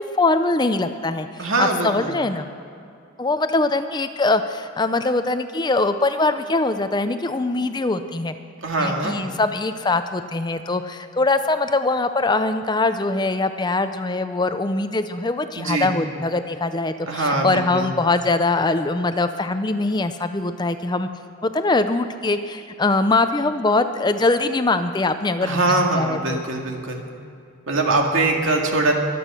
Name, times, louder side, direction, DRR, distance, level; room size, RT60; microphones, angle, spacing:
voice 1, 0.0-2.5 3.2-8.3 8.8-21.1 21.4-25.6 25.9-26.4, left 2 dB, 20° left, 9 dB, 0.5 m, -22 dB
voice 2, 1.4-2.1 8.6-9.2 15.6-15.9 17.1-17.9 25.4-27.0 27.7-28.9, right 2 dB, 70° right, 1 dB, 2.1 m, -22 dB
23.0 x 8.5 x 6.2 m, 2.5 s
head